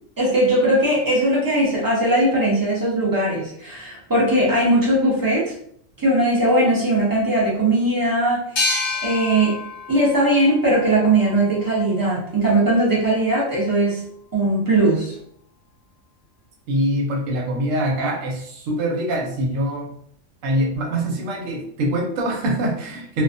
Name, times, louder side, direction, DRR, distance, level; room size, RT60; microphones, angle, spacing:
voice 1, 0.2-5.5 6.0-8.4 9.0-9.6 9.9-14.0 14.3-15.1, right 1 dB, 20° right, -5 dB, 0.6 m, -19 dB
sound 1, 8.6-11.9, left 3 dB, 55° left, 0.7 m, -29 dB
voice 2, 16.7-19.9 20.4-23.2, right 1 dB, 85° right, 0 dB, 1.0 m, -24 dB
2.4 x 2.1 x 2.5 m, 0.66 s
omnidirectional pair, 1.3 m